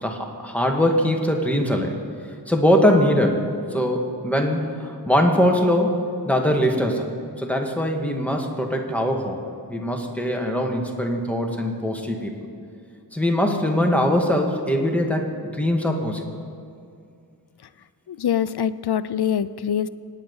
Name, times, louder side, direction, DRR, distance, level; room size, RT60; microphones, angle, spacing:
voice 1, 0.0-1.9 2.5-3.4 3.7-7.1 7.4-9.4 9.7-12.3 13.1-16.2, equal, 5° left, 1 dB, 2.0 m, -22 dB
voice 2, 18.1-19.9, left 9 dB, 80° left, 15 dB, 0.6 m, -24 dB
25.5 x 10.0 x 5.6 m, 2.4 s
wide cardioid pair, 80°, 38 cm